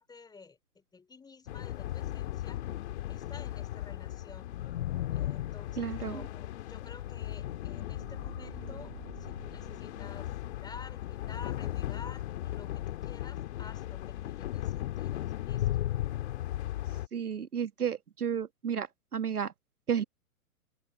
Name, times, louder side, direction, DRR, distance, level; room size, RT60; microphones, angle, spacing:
voice 1, 0.0-2.6 3.1-4.6 5.1-16.1, left 4 dB, 10° left, 3.3 m, -52 dB
sound 1, 1.5-17.1, left 13 dB, 45° left, 2.2 m, -36 dB
voice 2, 5.8-6.2 17.1-18.9 19.1-19.5 19.9-20.0, right 8 dB, 80° right, 1.6 m, -32 dB
sound 2, 6.5-12.7, right 10 dB, 55° right, 2.4 m, -54 dB
figure-of-eight pair, 120°, 45 cm